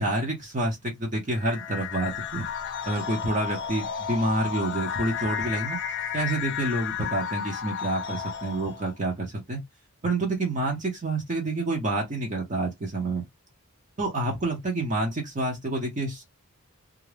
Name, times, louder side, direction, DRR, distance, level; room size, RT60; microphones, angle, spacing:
voice 1, 0.0-2.4 2.8-5.8 6.1-9.6 10.0-13.2 14.0-16.3, right 2 dB, 35° right, 0.7 m, -28 dB
sound 1, 1.3-8.9, left 7 dB, 55° left, 0.5 m, -33 dB
2.4 x 2.1 x 3.2 m
head